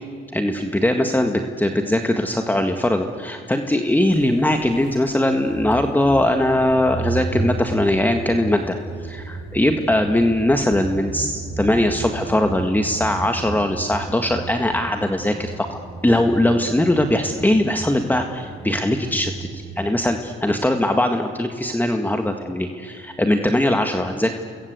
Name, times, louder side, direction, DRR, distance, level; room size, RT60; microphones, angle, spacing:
voice 1, 0.3-8.8 9.0-24.3, left 1 dB, 10° left, 5 dB, 1.8 m, -20 dB
sound 1, 4.0-19.9, right 4 dB, 45° right, 5.0 m, -33 dB
29.5 x 22.0 x 8.2 m, 2.2 s
cardioid pair, 90°, 20 cm